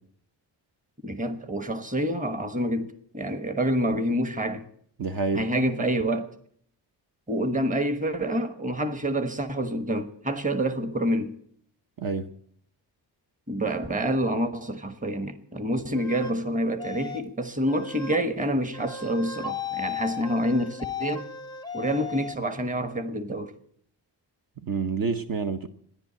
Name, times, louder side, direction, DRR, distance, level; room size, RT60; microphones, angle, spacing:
voice 1, 1.0-4.6 5.3-6.3 7.3-11.4 13.5-21.3 21.7-23.5, right 1 dB, 20° right, 1.2 m, -27 dB
voice 2, 5.0-5.4 12.0-12.3 24.6-25.7, right 4 dB, 55° right, 0.9 m, -28 dB
sound 1, 15.9-16.4 16.8-17.3 17.7-18.2 18.7-22.4, left 7 dB, 10° left, 0.6 m, -36 dB
14.0 x 10.5 x 8.6 m
wide cardioid pair, 145°, 42 cm